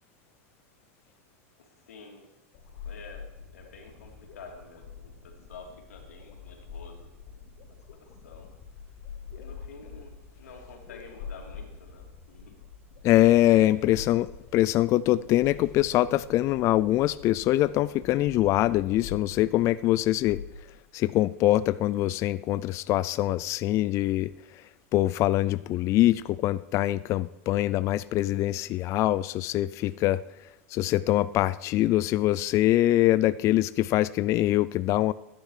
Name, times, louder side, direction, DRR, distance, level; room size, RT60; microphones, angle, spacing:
voice 1, 1.6-2.3 2.8-7.1 7.9-8.5 9.3-12.5 13.8-13.9, left 4 dB, 90° left, 2 dB, 3.0 m, -49 dB
sound 1, 2.5-20.4, left 6 dB, 60° left, 2.6 m, -45 dB
voice 2, 13.0-14.3 14.5-20.4 20.9-24.3 24.9-30.2 30.7-35.1, left 15 dB, 40° left, 17 dB, 0.4 m, -23 dB
14.5 x 10.0 x 4.9 m, 0.96 s
hypercardioid pair, 115°, 8 cm